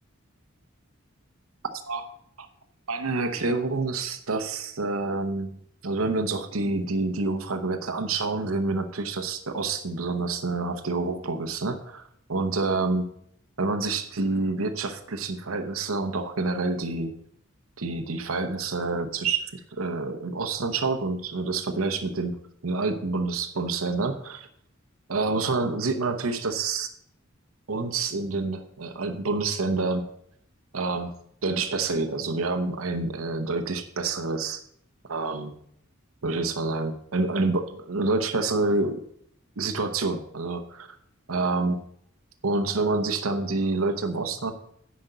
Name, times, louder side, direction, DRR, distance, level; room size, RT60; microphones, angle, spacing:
voice 1, 2.9-12.0 12.3-13.1 13.6-17.1 17.8-22.4 22.6-24.5 25.1-26.9 27.7-30.0 30.7-31.1 31.4-34.6 35.1-35.5 36.2-39.0 39.6-40.9 41.3-41.8 42.4-44.5, right 3 dB, 75° right, 8 dB, 0.9 m, -27 dB
9.9 x 5.2 x 6.6 m, 0.70 s
head